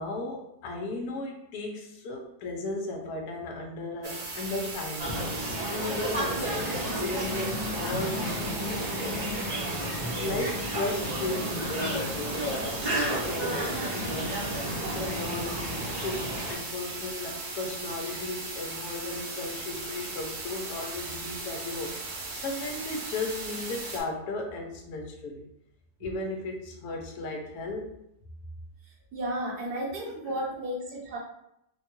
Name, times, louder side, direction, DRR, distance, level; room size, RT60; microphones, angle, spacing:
voice 1, 0.0-9.3 10.2-14.4 14.9-21.9 22.4-25.5 26.0-27.9 30.1-30.4, left 2 dB, 75° left, 1 dB, 1.1 m, -36 dB
sound 1, 4.0-24.0, right 3 dB, 65° right, 1.0 m, -38 dB
sound 2, 5.0-16.5, right 1 dB, 35° right, 0.7 m, -32 dB
voice 2, 29.1-31.2, right 1 dB, 80° right, -2 dB, 1.4 m, -33 dB
3.5 x 2.2 x 2.9 m, 0.80 s
omnidirectional pair, 1.7 m